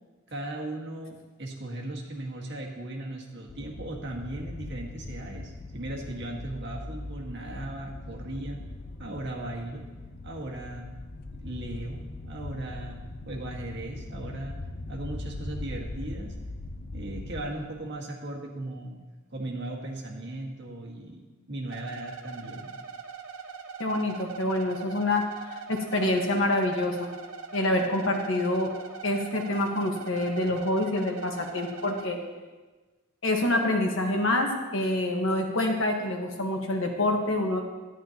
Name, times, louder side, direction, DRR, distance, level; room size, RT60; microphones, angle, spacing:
voice 1, 0.3-8.6 9.0-9.9 10.2-10.9 11.3-13.0 13.3-14.6 14.9-16.3 16.9-19.0 19.3-21.2 21.5-22.7, right 1 dB, 55° right, -1 dB, 1.7 m, -37 dB
sound 1, 3.5-17.4, left 2 dB, 45° left, 0.6 m, -40 dB
sound 2, 21.7-32.1, right 6 dB, 85° right, 0.9 m, -42 dB
voice 2, 23.8-25.2 25.5-27.1 27.5-28.7 29.0-32.2 33.2-37.6, left 1 dB, 65° left, 2 dB, 1.4 m, -26 dB
12.0 x 11.5 x 2.9 m, 1.3 s
head